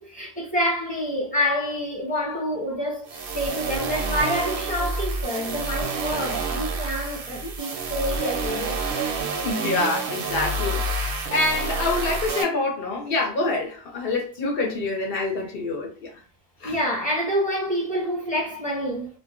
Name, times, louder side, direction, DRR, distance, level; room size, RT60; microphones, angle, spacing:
voice 1, 0.0-8.8 16.6-19.1, equal, 10° left, 1.1 m, -27 dB
sound 1, 3.1-12.4, right 3 dB, 65° right, 0.7 m, -28 dB
voice 2, 9.4-16.1 16.6-16.8, left 3 dB, 60° left, 1.0 m, -26 dB
2.4 x 2.3 x 2.3 m
omnidirectional pair, 1.1 m